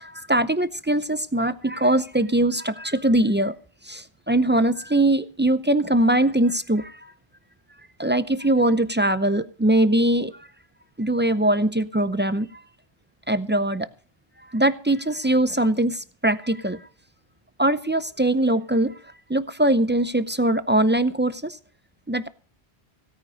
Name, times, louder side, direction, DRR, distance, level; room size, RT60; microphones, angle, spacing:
voice 1, 0.0-3.5 3.8-7.1 8.0-10.3 11.0-12.5 13.3-13.9 14.5-16.9 17.6-18.9 19.3-21.6 22.1-22.3, right 1 dB, 15° right, 13 dB, 0.4 m, -22 dB
17.0 x 9.1 x 5.1 m, 0.41 s
omnidirectional pair, 1.1 m